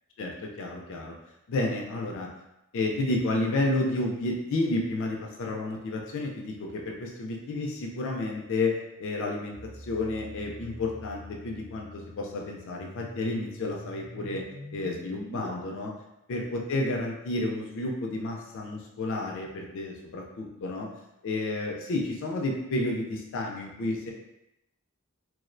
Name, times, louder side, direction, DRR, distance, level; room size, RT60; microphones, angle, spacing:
voice 1, 0.2-1.2 1.5-2.3 2.7-14.4 14.7-15.9 16.3-20.9 21.2-24.1, left 2 dB, 60° left, 0 dB, 0.4 m, -31 dB
sound 1, 9.5-15.5, left 1 dB, 30° right, 0.6 m, -45 dB
2.4 x 2.0 x 2.5 m, 0.86 s
head